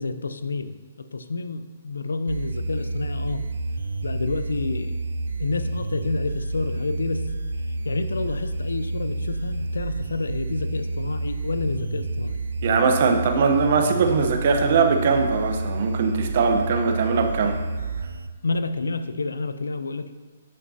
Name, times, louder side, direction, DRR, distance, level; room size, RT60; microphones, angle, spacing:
voice 1, 0.0-3.4 4.0-5.0 5.4-7.2 7.8-12.4 18.4-20.1, left 3 dB, 90° left, 11 dB, 0.4 m, -29 dB
sound 1, 2.3-18.3, right 2 dB, 85° right, 0.4 m, -29 dB
voice 2, 12.6-17.6, right 5 dB, 55° right, 5 dB, 0.8 m, -21 dB
8.4 x 6.0 x 2.8 m, 1.5 s
hypercardioid pair, 140°, 0 cm